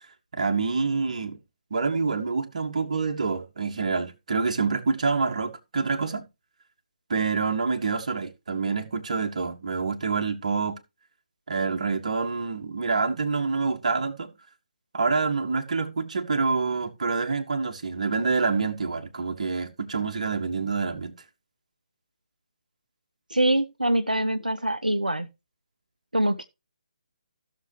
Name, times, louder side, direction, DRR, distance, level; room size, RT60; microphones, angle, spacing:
voice 1, 0.3-1.4 1.7-6.3 7.1-10.8 11.5-14.3 14.9-21.1, right 4 dB, 50° right, 1.8 m, -27 dB
voice 2, 23.3-25.3 26.1-26.4, right 1 dB, 85° right, 0.7 m, -24 dB
15.5 x 6.7 x 3.1 m
figure-of-eight pair, 140°, 4 cm